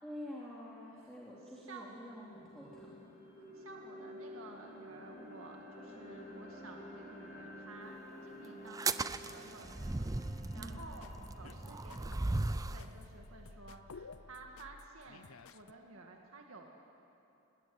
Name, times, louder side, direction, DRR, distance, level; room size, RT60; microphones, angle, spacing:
voice 1, 0.0-3.0 10.5-10.8, equal, 5° left, -7 dB, 3.2 m, -47 dB
sound 1, 1.2-1.3 1.8-13.8, left 1 dB, 35° left, 6.7 m, -52 dB
voice 2, 1.4-2.0 3.5-10.1 10.5-16.7, right 3 dB, 75° right, 1 dB, 2.0 m, -53 dB
sound 2, 8.7-12.9, right 3 dB, 15° right, 0.5 m, -37 dB
sound 3, 10.6-15.7, left 4 dB, 80° left, 0.7 m, -54 dB
25.0 x 20.5 x 9.6 m, 2.9 s
head